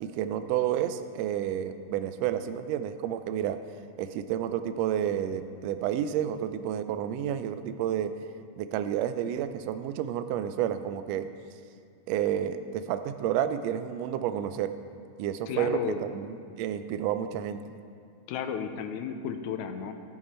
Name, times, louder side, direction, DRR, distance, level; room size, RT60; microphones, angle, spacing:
voice 1, 0.0-3.6 4.0-8.1 8.6-11.3 12.1-14.7 15.2-15.8 16.1-17.6, right 10 dB, 80° right, 10 dB, 1.5 m, -30 dB
voice 2, 15.5-16.0 18.3-19.9, left 7 dB, 90° left, 7 dB, 2.0 m, -33 dB
15.5 x 5.9 x 4.3 m, 2.3 s
omnidirectional pair, 3.3 m